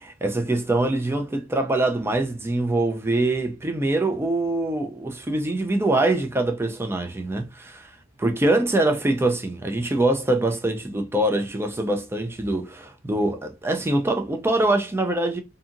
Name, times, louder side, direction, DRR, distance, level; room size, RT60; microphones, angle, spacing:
voice 1, 0.0-7.9 8.2-15.4, right 2 dB, 10° right, 0.4 m, -24 dB
2.7 x 2.6 x 2.5 m
head